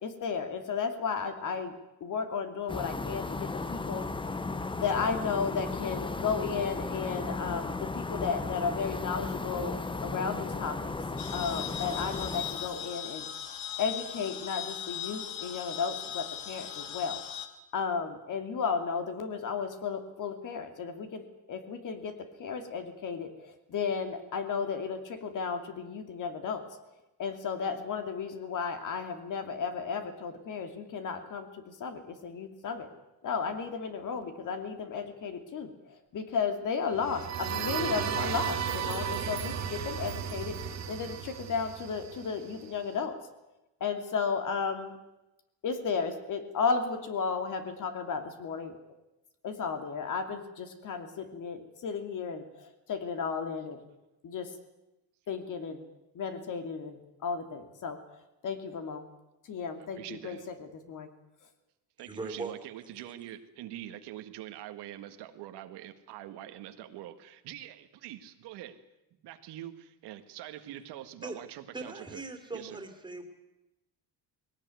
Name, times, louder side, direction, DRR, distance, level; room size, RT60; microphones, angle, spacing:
voice 1, 0.0-1.7 2.0-4.1 4.8-10.9 11.3-13.3 13.8-17.2 17.7-26.7 27.2-32.9 33.2-35.7 36.1-43.2 43.8-45.0 45.6-48.8 49.4-53.8 54.2-54.5 55.3-55.8 56.1-58.0 58.4-59.1 59.4-61.1, left 5 dB, 50° left, 7 dB, 2.7 m, -34 dB
sound 1, 2.7-12.9, left 3 dB, 10° left, 0.8 m, -35 dB
sound 2, 11.2-17.5, left 10 dB, 85° left, 2.6 m, -39 dB
cinematic intro, 36.9-42.7, right 8 dB, 40° right, 1.9 m, -34 dB
voice 2, 60.0-60.5 62.0-68.8 69.2-72.2 72.5-72.8, right 12 dB, 75° right, 8 dB, 1.8 m, -44 dB
voice 3, 62.0-62.5 71.2-71.4 71.7-73.2, right 3 dB, 10° right, 6 dB, 3.3 m, -39 dB
20.0 x 18.0 x 9.5 m, 0.96 s
cardioid pair, 140°, 41 cm